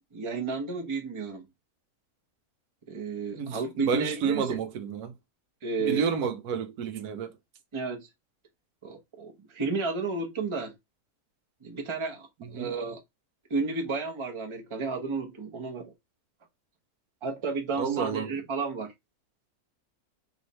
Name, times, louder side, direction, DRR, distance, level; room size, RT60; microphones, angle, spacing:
voice 1, 0.1-1.5 2.9-4.6 5.6-6.1 7.7-8.1 8.8-10.8 11.6-13.0 13.5-15.9 17.2-18.9, right 4 dB, 25° right, 0.7 m, -32 dB
voice 2, 3.4-5.1 5.8-7.3 12.4-12.7 17.8-18.3, right 6 dB, 90° right, 1.2 m, -30 dB
3.2 x 3.0 x 4.1 m
omnidirectional pair, 1.6 m